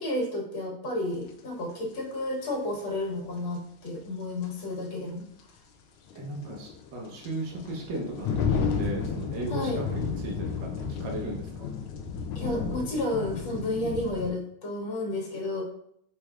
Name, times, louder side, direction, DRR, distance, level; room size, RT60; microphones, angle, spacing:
voice 1, 0.0-5.3 9.5-9.8 12.4-15.6, left 1 dB, 70° left, -2 dB, 1.8 m, -31 dB
sound 1, 1.3-1.4 3.9-4.0 4.4-4.5 6.1-14.3, left 6 dB, 90° left, 1.5 m, -32 dB
voice 2, 6.2-11.7, right 2 dB, 65° right, -1 dB, 1.6 m, -36 dB
4.6 x 4.4 x 2.4 m, 0.71 s
omnidirectional pair, 2.3 m